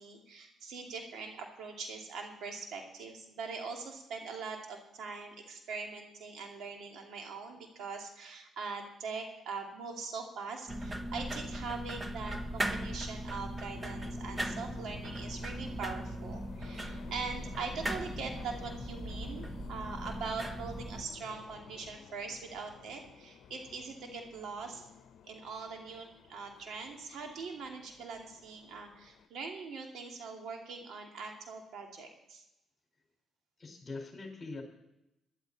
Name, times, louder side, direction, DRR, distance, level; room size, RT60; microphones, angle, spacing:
voice 1, 0.0-24.9 25.2-32.4, right 4 dB, 75° right, 2 dB, 2.8 m, -42 dB
sound 1, 10.7-21.0, right 1 dB, 20° right, 1.0 m, -39 dB
sound 2, 13.7-29.3, left 8 dB, 75° left, 0.9 m, -53 dB
voice 2, 33.6-34.6, left 3 dB, 30° left, 2 dB, 4.9 m, -42 dB
17.5 x 11.5 x 4.2 m, 0.88 s
cardioid pair, 90°, 0 cm